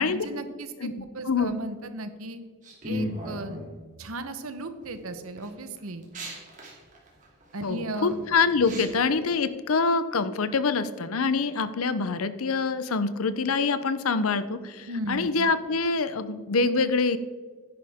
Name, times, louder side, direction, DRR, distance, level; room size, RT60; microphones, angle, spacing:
voice 1, 0.0-2.4 2.8-3.6 4.0-6.1 7.5-8.2 8.7-8.9 14.9-15.5, right 1 dB, 80° right, 9 dB, 1.0 m, -36 dB
voice 2, 0.8-1.6 7.6-17.2, left 4 dB, 80° left, 13 dB, 0.7 m, -25 dB
sound 1, 2.6-3.7 4.5-4.9 5.4-9.0, equal, 35° right, 2.6 m, -36 dB
10.5 x 10.0 x 3.6 m, 1.5 s
head